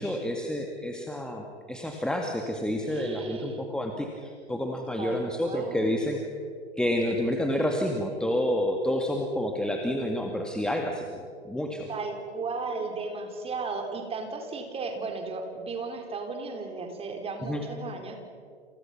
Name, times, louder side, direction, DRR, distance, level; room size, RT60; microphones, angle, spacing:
voice 1, 0.0-6.2 6.8-11.9 17.4-17.6, left 1 dB, ahead, 2 dB, 2.1 m, -29 dB
voice 2, 2.9-3.6 5.0-6.0 11.9-18.2, right 4 dB, 15° right, 3 dB, 4.3 m, -35 dB
29.5 x 28.5 x 6.0 m, 2.2 s
figure-of-eight pair, 105°, 34 cm